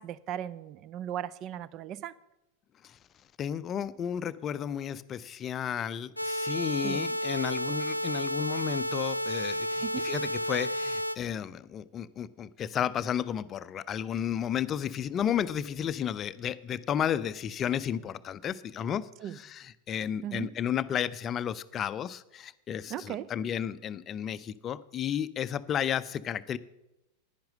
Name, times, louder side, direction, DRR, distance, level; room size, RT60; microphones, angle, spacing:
voice 1, 0.0-2.1 6.8-7.1 9.8-10.1 19.2-19.4 20.2-20.5 22.9-23.3, right 11 dB, 35° right, 0.5 m, -37 dB
voice 2, 3.4-26.6, left 9 dB, 25° left, 0.5 m, -33 dB
sound 1, 6.2-11.2, equal, 90° left, 0.4 m, -31 dB
10.5 x 10.5 x 6.5 m
figure-of-eight pair, 90°, 0 cm